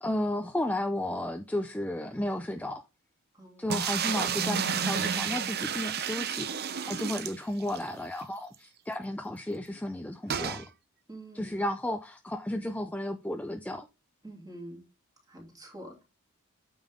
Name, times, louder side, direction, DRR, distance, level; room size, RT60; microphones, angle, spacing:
voice 1, 0.0-2.8 3.6-10.7 11.3-13.9, left 1 dB, 5° left, 0.4 m, -33 dB
voice 2, 3.3-3.8 11.1-11.6 14.2-14.9 15.3-16.0, right 1 dB, 15° right, 2.8 m, -46 dB
sound 1, 3.7-7.9 8.2-8.3 8.5-8.6 10.3-10.6, right 7 dB, 45° right, 0.7 m, -31 dB
9.0 x 5.5 x 3.6 m
head